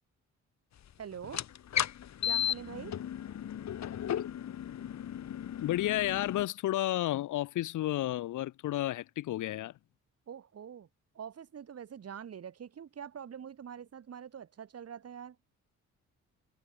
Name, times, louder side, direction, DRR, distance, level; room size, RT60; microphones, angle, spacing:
voice 1, 1.0-1.4 2.2-3.0 10.3-10.9 11.1-15.4, right 8 dB, 55° right, 6.7 m, -45 dB
sound 1, 1.2-6.4, left 10 dB, 65° left, 3.3 m, -35 dB
voice 2, 5.6-9.7, left 14 dB, 80° left, 1.7 m, -31 dB
cardioid pair, 90°, 30 cm